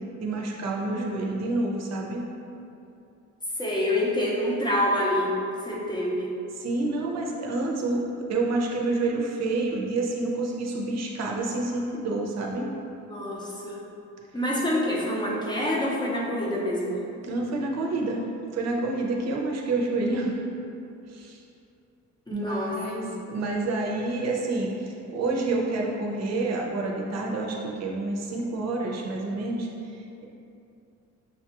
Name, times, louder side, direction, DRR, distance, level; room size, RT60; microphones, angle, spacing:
voice 1, 0.2-2.3 6.6-12.7 17.2-18.3 18.5-20.4 21.1-21.4 22.3-30.3, right 2 dB, 55° right, -1 dB, 0.6 m, -28 dB
voice 2, 0.9-1.5 3.6-6.4 13.1-13.8 14.3-17.0 22.3-23.2, left 1 dB, 15° left, -5 dB, 0.6 m, -27 dB
6.4 x 2.3 x 2.9 m, 2.7 s
cardioid pair, 145°, 31 cm